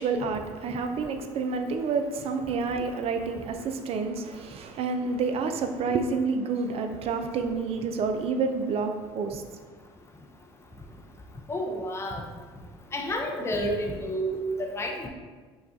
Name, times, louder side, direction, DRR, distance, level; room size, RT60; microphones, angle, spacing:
voice 1, 0.0-9.4, right 4 dB, 50° right, 6 dB, 0.4 m, -29 dB
voice 2, 11.5-12.2 12.9-15.1, equal, 20° left, 1 dB, 0.6 m, -30 dB
5.3 x 2.3 x 2.7 m, 1.5 s
supercardioid pair, 75°, 13 cm